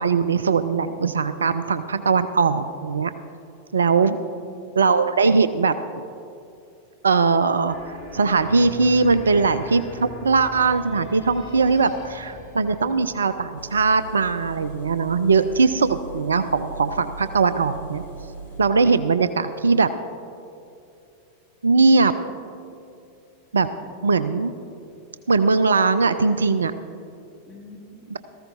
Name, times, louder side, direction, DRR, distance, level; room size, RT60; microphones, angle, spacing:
voice 1, 0.0-3.1 3.7-4.2 4.8-6.0 7.0-18.0 18.6-19.9 21.6-22.1 23.5-23.7 24.0-24.5 25.3-26.8 28.1-28.2, right 4 dB, 70° right, 13 dB, 0.4 m, -20 dB
voice 2, 4.0-4.8 23.8-24.6 27.5-28.2, left 2 dB, 5° left, -5 dB, 2.6 m, -44 dB
sound 1, 7.7-14.5, left 3 dB, 50° left, 2.6 m, -41 dB
Engine, 13.6-18.6, right 4 dB, 70° left, 1.5 m, -39 dB
18.5 x 14.5 x 2.5 m, 2.6 s
figure-of-eight pair, 90°, 0 cm